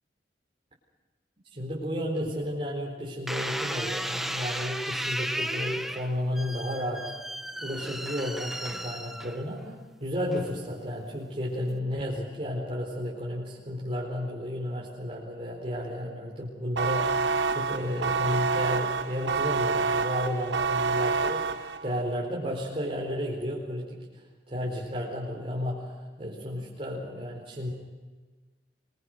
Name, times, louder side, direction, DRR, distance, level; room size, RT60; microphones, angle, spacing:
voice 1, 1.5-7.1 7.6-9.7 10.0-24.0 24.5-27.7, equal, 35° right, -5 dB, 4.5 m, -32 dB
sound 1, 3.3-9.7 10.3-10.8, right 1 dB, ahead, 1.1 m, -34 dB
sound 2, 16.8-22.0, right 4 dB, 75° right, 1.1 m, -27 dB
25.5 x 23.5 x 6.6 m, 1.4 s
head